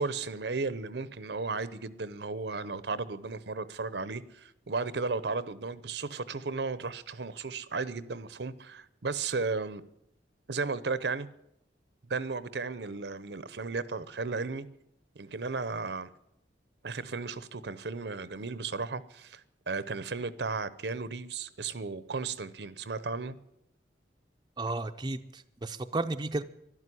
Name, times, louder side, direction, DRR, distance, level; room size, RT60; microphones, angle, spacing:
voice 1, 0.0-9.8 10.5-11.3 12.1-14.7 15.2-16.1 16.8-19.4 19.7-23.4, right 4 dB, 70° right, 0.8 m, -34 dB
voice 2, 24.6-26.4, right 2 dB, 25° right, 0.6 m, -33 dB
12.5 x 12.0 x 9.9 m
head